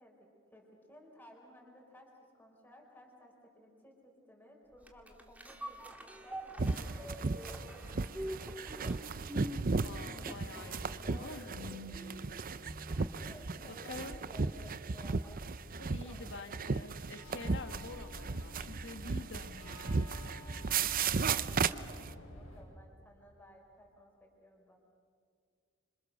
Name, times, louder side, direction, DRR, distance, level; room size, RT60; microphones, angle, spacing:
voice 1, 0.0-9.8 11.0-12.3 13.1-15.4 15.7-16.5 20.4-21.3 21.6-24.8, equal, 10° left, -1 dB, 4.5 m, -57 dB
sound 1, 4.8-13.4 13.8-13.9, equal, 5° right, 1.8 m, -46 dB
sound 2, 6.6-22.1, right 4 dB, 45° right, 0.6 m, -35 dB
voice 2, 9.7-11.6 12.0-12.1 13.7-14.2 15.8-20.0, left 3 dB, 60° left, 8 dB, 1.7 m, -47 dB
sound 3, 17.1-22.6, left 1 dB, 90° left, 8.0 m, -51 dB
27.0 x 26.0 x 6.7 m, 2.1 s
head